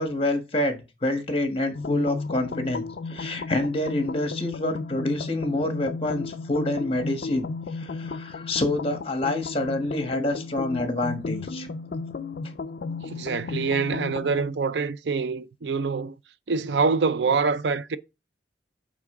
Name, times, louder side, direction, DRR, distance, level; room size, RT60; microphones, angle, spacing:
voice 1, 0.0-7.5 7.7-11.7, left 1 dB, 35° left, 1.3 m, -27 dB
sound 1, 1.7-14.5, left 3 dB, 60° left, 0.4 m, -34 dB
voice 2, 13.0-16.1 16.5-18.0, right 4 dB, 80° right, 0.5 m, -25 dB
8.5 x 3.7 x 3.6 m
head